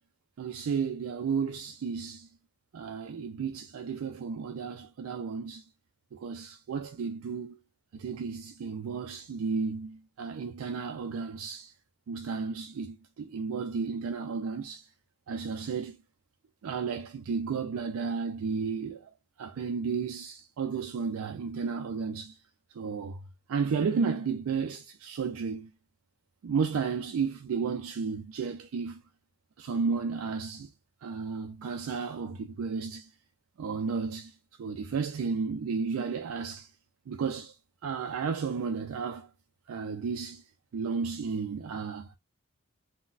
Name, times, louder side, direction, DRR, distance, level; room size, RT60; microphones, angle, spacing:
voice 1, 0.4-2.3 2.7-5.6 6.1-7.6 7.9-11.7 12.1-14.9 15.3-16.0 16.6-22.4 22.7-23.2 23.5-25.7 26.4-29.0 29.6-30.7 31.0-33.1 33.6-36.7 37.1-37.6 37.8-39.3 39.7-40.4 40.7-42.1, right 5 dB, 80° right, 0.4 m, -33 dB
3.9 x 2.1 x 2.4 m
head